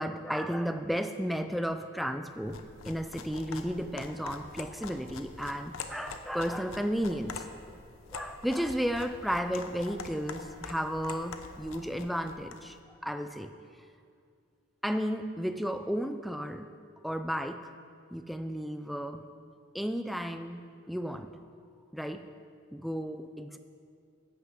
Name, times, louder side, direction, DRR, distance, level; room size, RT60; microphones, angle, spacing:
voice 1, 0.0-7.5 8.1-13.5 14.8-16.7 17.0-17.7 18.1-19.3 19.7-21.4 21.9-22.3 22.7-23.6, equal, ahead, 8 dB, 0.3 m, -33 dB
sound 1, 2.4-12.7, left 4 dB, 90° left, 0.7 m, -45 dB
11.5 x 5.9 x 8.1 m, 2.3 s
head